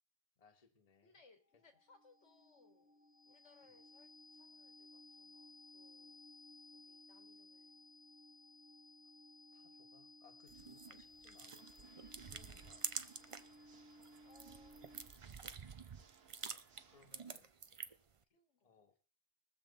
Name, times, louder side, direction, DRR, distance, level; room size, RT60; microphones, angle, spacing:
voice 1, 0.4-1.1 1.5-1.6 3.6-3.7 9.5-13.0 16.5-17.5 18.3-19.0, left 5 dB, 35° left, 5 dB, 1.2 m, -68 dB
voice 2, 1.0-3.0 3.2-6.2 6.7-7.8 10.8-11.0 14.2-15.6 18.3-18.8, left 3 dB, 85° left, 5 dB, 2.2 m, -69 dB
sound 1, 1.4-15.3, left 2 dB, 10° right, 1.1 m, -60 dB
sound 2, 10.5-13.6 13.9-18.1, right 5 dB, 40° right, 0.5 m, -48 dB
Water / Mechanisms, 11.3-17.3, right 6 dB, 65° right, 1.1 m, -67 dB
21.5 x 7.5 x 4.0 m, 0.40 s
omnidirectional pair, 1.2 m